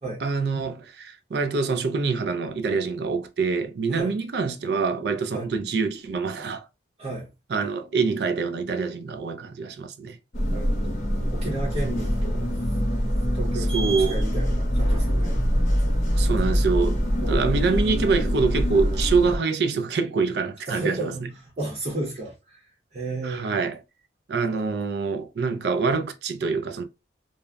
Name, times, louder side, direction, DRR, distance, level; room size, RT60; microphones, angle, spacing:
voice 1, 0.2-6.7 7.5-10.2 13.6-14.1 16.1-21.1 23.2-23.8 24.3-26.8, right 4 dB, 60° right, 0.4 m, -25 dB
voice 2, 7.0-7.3 10.5-11.0 11.3-12.5 13.3-15.4 17.2-17.7 19.2-19.4 20.7-22.6 22.9-23.6 24.5-24.8, right 2 dB, 35° right, 0.7 m, -33 dB
sound 1, 10.3-19.4, equal, 40° left, 0.7 m, -24 dB
2.2 x 2.0 x 3.3 m
head